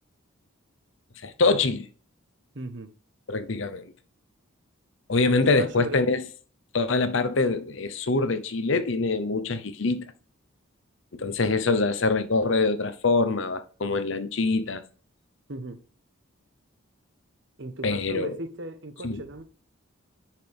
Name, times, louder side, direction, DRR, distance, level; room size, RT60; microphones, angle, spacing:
voice 1, 1.2-1.9 3.3-3.9 5.1-6.2 6.7-10.1 11.1-14.8 17.8-18.3 19.0-19.2, left 3 dB, 65° left, 0.8 m, -24 dB
voice 2, 2.5-2.9 5.3-6.0 15.5-15.8 17.6-19.4, right 2 dB, 55° right, 1.1 m, -36 dB
10.5 x 5.8 x 3.5 m
head